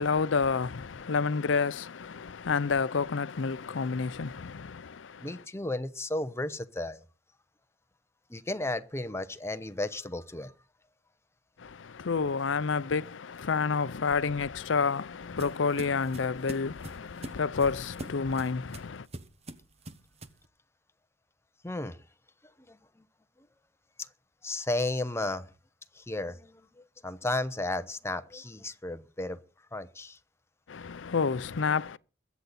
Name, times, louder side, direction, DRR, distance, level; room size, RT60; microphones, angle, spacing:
voice 1, 0.0-5.4 11.6-19.1 30.7-32.0, left 5 dB, 80° left, 0.6 m, -29 dB
voice 2, 5.2-7.0 8.3-10.5 21.6-22.0 22.7-22.8 24.4-25.5 25.9-29.4 29.7-30.2, left 2 dB, 15° left, 0.9 m, -34 dB
sound 1, 14.4-20.5, right 1 dB, 35° right, 1.1 m, -45 dB
22.0 x 8.2 x 4.2 m
head